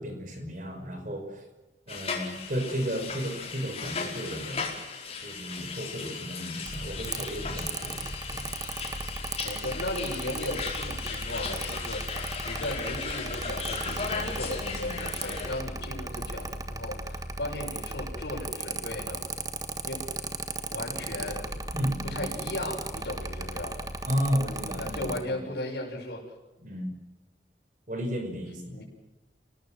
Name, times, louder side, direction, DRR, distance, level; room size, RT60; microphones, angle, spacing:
voice 1, 0.0-1.4 1.9-4.7 5.2-8.5 21.7-22.2 24.1-25.4 26.6-26.9 27.9-28.8, equal, 45° right, 5 dB, 5.6 m, -33 dB
sound 1, 1.9-15.6, left 5 dB, 35° left, 4.9 m, -37 dB
Mechanical fan, 6.7-25.2, right 2 dB, 20° right, 1.4 m, -36 dB
voice 2, 9.4-19.2 19.8-20.0 20.7-21.5 22.0-23.8 24.7-26.2 28.7-28.8, left 1 dB, 70° left, -8 dB, 6.7 m, -36 dB
29.0 x 18.5 x 7.7 m, 1.1 s
head